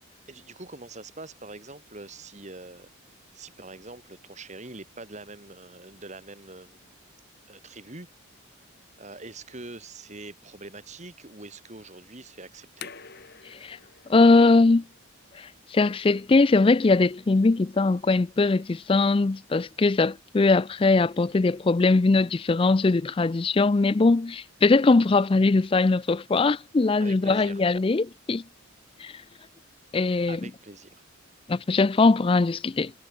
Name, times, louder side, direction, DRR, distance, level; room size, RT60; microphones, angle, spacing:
voice 1, 0.3-6.9 7.5-8.1 8.5-8.6 9.0-12.9 27.0-27.6 30.3-31.0, right 2 dB, 35° right, 1.9 m, -44 dB
sound 1, 12.5-19.2, left 7 dB, 50° left, 2.2 m, -50 dB
voice 2, 14.1-14.8 15.4-28.4 29.0-29.1 29.9-30.4 31.5-32.9, left 3 dB, 25° left, 0.3 m, -21 dB
head